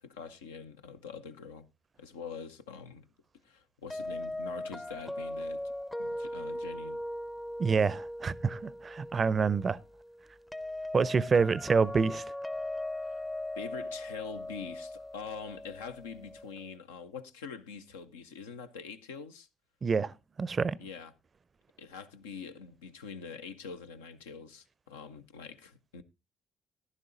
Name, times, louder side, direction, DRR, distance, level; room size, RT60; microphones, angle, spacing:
voice 1, 0.0-1.7 2.0-3.1 3.4-5.6 6.0-7.0 13.0-13.2 13.6-19.5 20.8-21.1 21.8-26.0, left 5 dB, 80° left, 0.5 m, -44 dB
sound 1, 3.9-16.8, left 1 dB, 15° left, 0.5 m, -39 dB
voice 2, 7.6-9.8 10.9-12.2 19.8-20.1 20.4-20.8, right 5 dB, 40° right, 0.5 m, -27 dB
14.0 x 11.0 x 2.6 m
hypercardioid pair, 45°, 0 cm